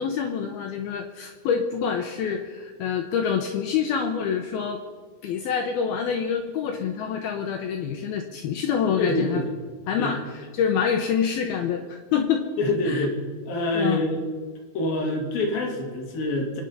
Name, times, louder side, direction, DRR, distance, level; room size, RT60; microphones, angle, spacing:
voice 1, 0.0-4.8 5.2-9.4 9.9-10.2 10.5-12.5 12.9-13.1 13.7-14.0, left 7 dB, 80° left, 4 dB, 2.3 m, -26 dB
voice 2, 9.0-9.5 10.0-10.1 12.6-13.2 13.5-14.2 14.7-16.6, left 2 dB, 55° left, 0 dB, 4.0 m, -26 dB
25.0 x 9.8 x 5.6 m, 1.5 s
omnidirectional pair, 5.5 m